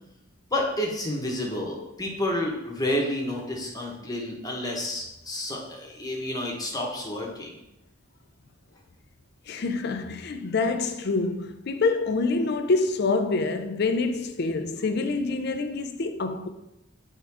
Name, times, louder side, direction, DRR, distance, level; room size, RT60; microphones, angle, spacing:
voice 1, 0.5-7.5, left 1 dB, 20° left, 1.1 m, -30 dB
voice 2, 9.5-16.5, left 3 dB, 60° left, 0.5 m, -26 dB
7.7 x 3.7 x 3.5 m
head